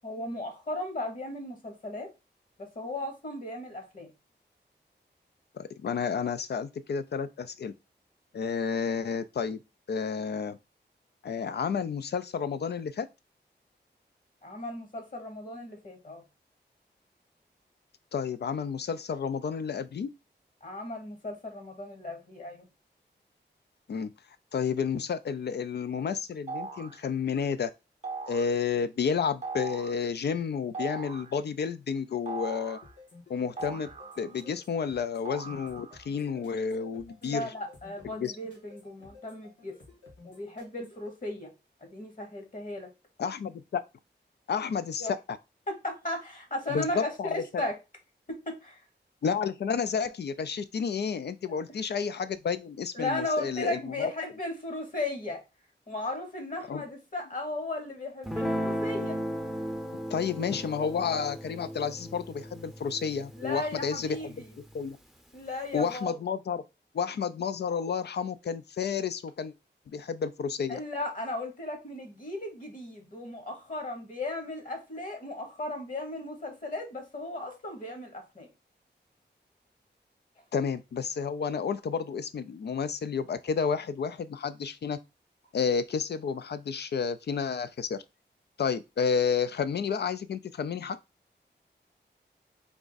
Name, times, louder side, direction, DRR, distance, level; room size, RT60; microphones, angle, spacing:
voice 1, 0.0-2.1 2.6-4.1 14.4-16.2 20.6-22.7 37.2-39.8 40.2-41.5 41.9-42.9 45.0-45.1 45.7-47.8 48.3-48.8 52.9-55.4 55.9-59.2 63.3-64.5 65.3-66.2 70.7-78.5, left 2 dB, 45° left, 1.2 m, -36 dB
voice 2, 5.5-7.7 8.3-9.6 9.9-10.6 11.2-13.1 18.1-20.1 23.9-24.1 24.5-27.7 28.3-32.8 33.3-33.9 34.2-37.5 38.1-38.3 43.2-43.8 44.5-45.4 46.7-47.4 49.2-54.1 56.7-56.8 60.1-64.3 64.7-65.0 65.7-66.6 66.9-69.5 69.9-70.8 80.5-85.0 85.5-88.0 88.6-91.0, left 6 dB, 65° left, 0.4 m, -31 dB
sound 1, 26.5-27.0 28.0-28.6 29.4-30.0 30.7-31.4 32.3-32.9 33.6-34.5 35.3-36.1, right 4 dB, 40° right, 0.6 m, -39 dB
sound 2, 32.8-41.1, left 3 dB, 80° left, 1.6 m, -54 dB
Guitar, 58.2-64.8, equal, ahead, 0.6 m, -36 dB
3.5 x 2.5 x 3.9 m
wide cardioid pair, 75°, 19 cm